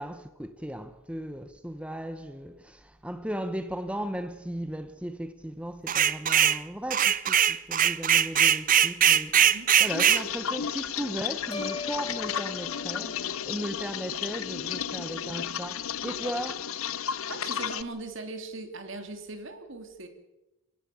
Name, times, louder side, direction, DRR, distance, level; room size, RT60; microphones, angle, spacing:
voice 1, 0.0-9.5 9.8-16.7, equal, 5° right, 0.9 m, -36 dB
sound 1, 5.9-6.6 6.9-10.2, right 9 dB, 40° right, 0.6 m, -21 dB
voice 2, 9.4-9.7 17.3-20.1, right 2 dB, 60° right, 2.9 m, -39 dB
sound 2, 9.8-17.8, left 8 dB, 80° left, 0.8 m, -33 dB
sound 3, 11.5-13.8, left 4 dB, 20° left, 2.1 m, -40 dB
28.0 x 16.0 x 7.0 m
head